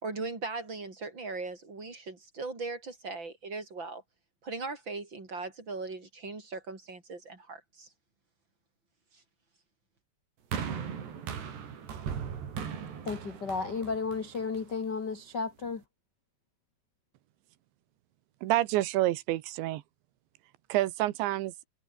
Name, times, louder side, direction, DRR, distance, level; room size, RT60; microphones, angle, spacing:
voice 1, 0.0-4.0 4.4-7.9, right 3 dB, 25° right, 5.5 m, -39 dB
sound 1, 10.5-14.9 15.7-15.8, right 7 dB, 70° right, 5.9 m, -38 dB
voice 2, 13.0-15.8, left 4 dB, 55° left, 1.2 m, -33 dB
voice 3, 18.4-19.8 20.7-21.5, right 16 dB, 85° right, 3.4 m, -28 dB
omnidirectional pair, 5.0 m